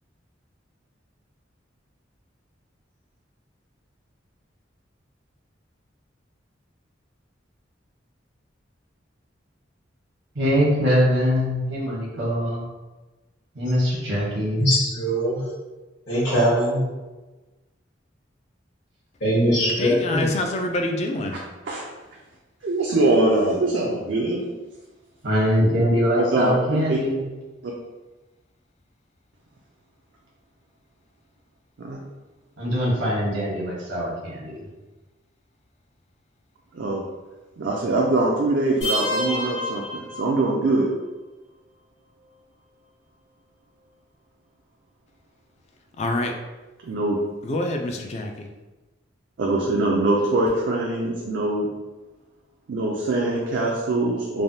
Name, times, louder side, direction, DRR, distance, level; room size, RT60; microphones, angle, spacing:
voice 1, 10.3-12.6 13.5-14.6 25.2-27.3 32.6-34.6, equal, 85° right, -5 dB, 1.0 m, -22 dB
voice 2, 14.6-15.4 16.1-16.8 19.2-20.3, equal, 70° left, -12 dB, 1.1 m, -21 dB
voice 3, 19.8-21.4 46.0-46.3 47.4-48.5, left 1 dB, 35° left, 3 dB, 0.3 m, -26 dB
voice 4, 22.6-24.5 26.1-27.0 27.6-27.7 31.8-32.0 36.7-37.0 37.6-40.9 46.8-47.2 49.4-51.7 52.7-54.4, right 2 dB, 65° right, -2 dB, 0.4 m, -23 dB
sound 1, 38.8-40.8, left 1 dB, 85° left, 1.3 m, -28 dB
3.3 x 2.1 x 2.7 m, 1.2 s
head